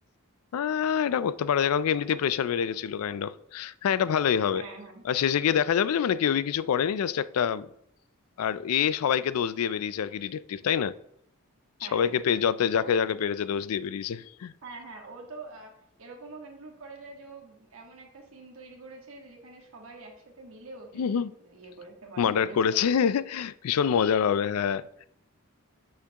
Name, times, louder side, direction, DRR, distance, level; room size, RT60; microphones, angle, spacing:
voice 1, 0.5-4.6 5.1-7.7 8.4-11.0 11.9-14.5 21.0-21.3 22.2-25.1, left 8 dB, 85° left, 0.4 m, -26 dB
voice 2, 4.5-5.0 11.8-12.2 12.7-12.9 14.6-15.7 16.0-22.7, right 3 dB, 70° right, 1.6 m, -45 dB
8.4 x 5.8 x 2.9 m
head